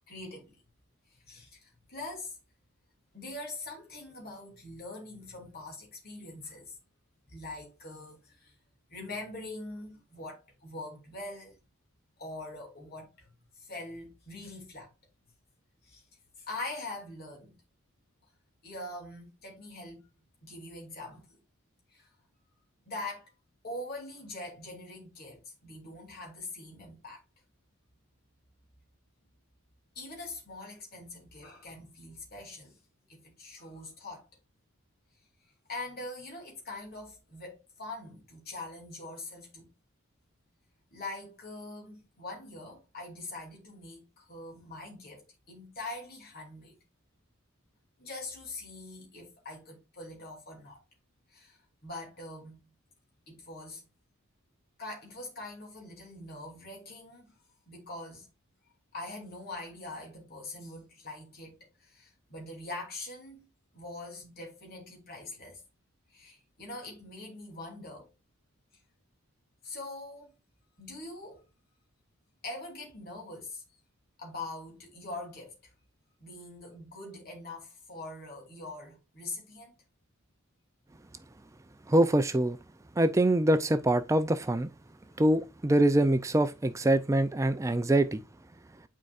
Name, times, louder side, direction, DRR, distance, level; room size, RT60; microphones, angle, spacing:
voice 1, 0.1-0.6 1.1-2.4 3.1-6.8 7.3-8.6 8.9-11.6 12.2-14.9 15.8-16.0 16.4-17.6 18.6-20.1 20.4-21.4 21.9-22.1 22.8-23.3 23.6-27.2 29.9-32.8 33.1-34.3 35.7-39.7 40.9-46.8 48.0-50.8 51.3-52.7 53.3-53.9 54.8-57.4 57.7-58.3 58.7-63.4 63.7-65.6 66.1-68.1 69.6-70.3 70.8-71.4 72.4-73.8 74.2-75.7 76.2-79.8, left 2 dB, 45° left, 2.6 m, -43 dB
voice 2, 81.9-82.6 83.0-84.7 85.2-88.2, right 1 dB, 15° right, 0.4 m, -24 dB
8.8 x 4.6 x 2.4 m
head